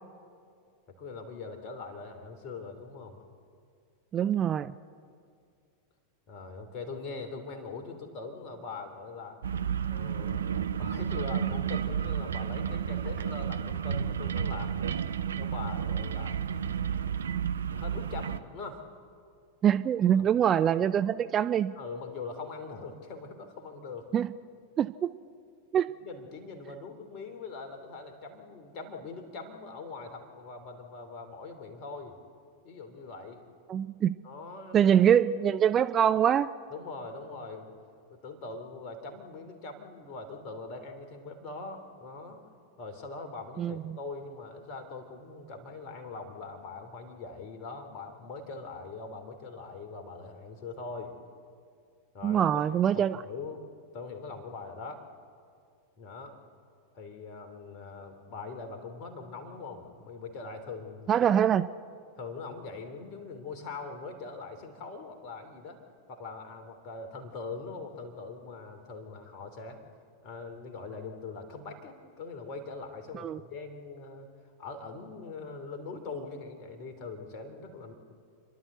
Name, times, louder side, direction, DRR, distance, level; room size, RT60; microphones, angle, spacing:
voice 1, 1.0-3.2 6.3-9.4 9.8-10.5 10.8-14.9 15.4-16.4 17.7-18.8 20.1-20.3 21.8-24.1 26.0-32.2 32.6-33.4 34.2-34.9 36.7-37.7 38.1-42.4 42.8-51.1 52.1-53.6 53.9-55.0 56.0-56.3 56.9-61.1 62.2-65.8 66.1-69.8 70.2-74.3 74.6-77.9, left 4 dB, 40° left, 5 dB, 3.1 m, -42 dB
voice 2, 4.1-4.7 19.6-21.7 24.1-24.3 24.8-25.1 25.7-25.9 33.7-34.2 34.7-36.5 43.6-44.0 52.2-53.2 61.1-61.7 73.1-73.4, right 9 dB, 25° right, 13 dB, 0.5 m, -24 dB
sound 1, 9.4-18.4, right 8 dB, 70° right, 0.7 m, -31 dB
30.0 x 11.5 x 8.1 m, 2.2 s
figure-of-eight pair, 90°, 0 cm